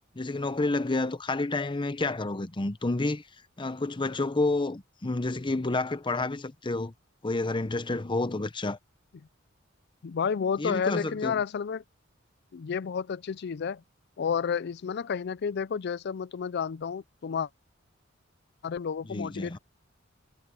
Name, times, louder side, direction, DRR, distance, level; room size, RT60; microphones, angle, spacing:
voice 1, 0.2-3.2 3.6-6.9 7.2-8.8 10.6-11.4 19.1-19.6, left 2 dB, 25° left, 0.8 m, -29 dB
voice 2, 10.0-11.8 12.5-13.8 14.2-17.5 18.6-19.6, left 6 dB, 55° left, 0.4 m, -31 dB
head